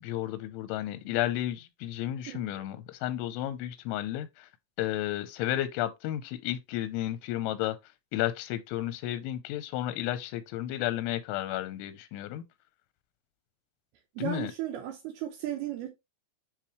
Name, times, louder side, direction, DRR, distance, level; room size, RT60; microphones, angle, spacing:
voice 1, 0.0-4.5 4.8-7.8 8.1-12.4 14.2-14.5, left 13 dB, 90° left, 3.1 m, -32 dB
voice 2, 14.2-15.9, right 11 dB, 75° right, 2.3 m, -35 dB
9.3 x 3.6 x 3.0 m
omnidirectional pair, 5.4 m